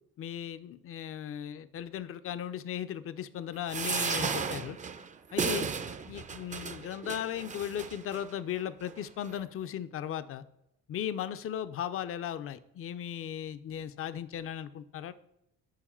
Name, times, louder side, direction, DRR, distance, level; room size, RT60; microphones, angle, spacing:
voice 1, 0.2-4.8 5.3-5.7 6.1-10.4 10.9-15.1, left 10 dB, 45° left, 14 dB, 0.4 m, -37 dB
sound 1, 3.7-8.2 8.9-9.0 9.2-9.4, right 6 dB, 25° right, 0.4 m, -34 dB
5.1 x 4.8 x 4.3 m, 0.81 s
cardioid pair, 90°, 30 cm